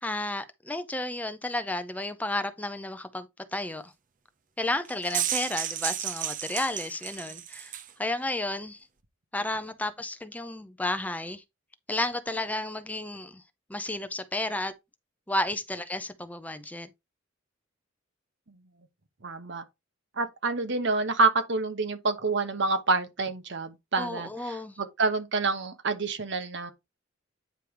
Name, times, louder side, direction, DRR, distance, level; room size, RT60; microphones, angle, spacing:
voice 1, 0.0-3.3 3.5-3.9 4.6-8.8 9.3-11.4 11.9-13.4 13.7-14.7 15.3-16.9 24.0-24.8, left 1 dB, 10° left, 0.5 m, -32 dB
sound 1, 4.8-7.9, right 10 dB, 40° right, 0.7 m, -32 dB
voice 2, 19.2-19.6 20.2-26.7, right 3 dB, 65° right, 1.1 m, -28 dB
9.2 x 3.4 x 4.5 m
head